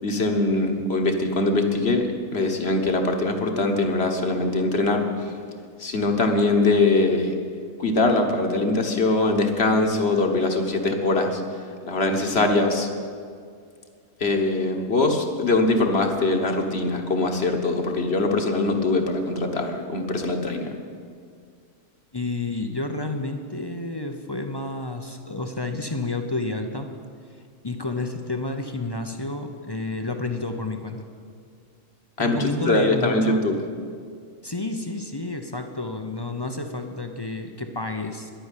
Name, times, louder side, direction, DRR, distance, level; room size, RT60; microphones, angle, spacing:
voice 1, 0.0-5.1 5.8-7.3 7.8-11.4 11.8-12.9 14.2-20.7 32.2-32.4 32.7-33.5, left 2 dB, 50° left, 4 dB, 1.4 m, -22 dB
voice 2, 22.1-26.9 27.6-31.0 32.2-33.4 34.4-38.3, left 2 dB, 25° left, 5 dB, 0.6 m, -30 dB
11.0 x 9.1 x 9.8 m, 2.2 s
omnidirectional pair, 1.4 m